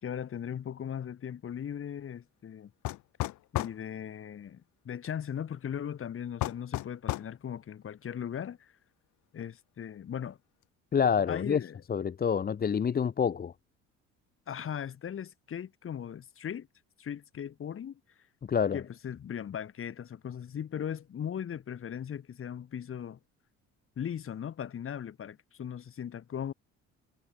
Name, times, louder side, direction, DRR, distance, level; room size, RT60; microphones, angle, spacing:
voice 1, 0.0-2.7 3.5-8.7 9.3-10.4 11.3-11.8 14.5-16.7 17.0-18.0 18.7-23.2 24.0-26.5, left 8 dB, 45° left, 4.1 m, -38 dB
sound 1, 2.8-3.8 6.4-7.3, left 16 dB, 75° left, 2.6 m, -33 dB
voice 2, 10.9-11.6 11.9-13.5 18.5-18.8, left 7 dB, 30° left, 1.0 m, -27 dB
cardioid pair, 100°, 30 cm